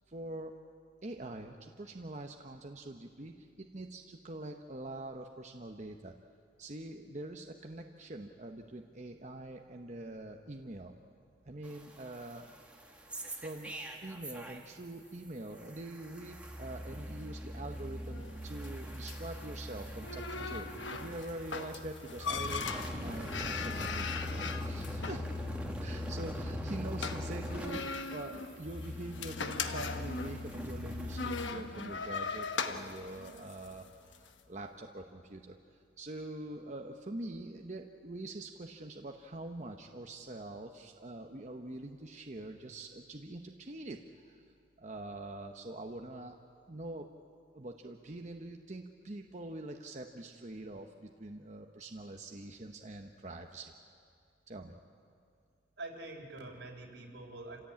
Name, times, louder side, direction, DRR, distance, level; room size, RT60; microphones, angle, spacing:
voice 1, 0.1-0.5 1.0-6.1 6.6-11.0 11.5-12.5 13.3-13.8 14.0-25.3 25.8-44.5 44.8-46.4 46.7-47.1 47.5-53.7 54.5-54.8, right 2 dB, 40° right, 3 dB, 0.9 m, -44 dB
sound 1, 11.6-14.9 15.1-31.5, left 1 dB, 5° right, 1.7 m, -41 dB
sound 2, 17.0-34.3, left 4 dB, 85° left, 1.2 m, -41 dB
voice 2, 55.8-57.6, right 2 dB, 80° right, 2 dB, 3.7 m, -45 dB
28.0 x 16.0 x 8.6 m, 2.4 s
head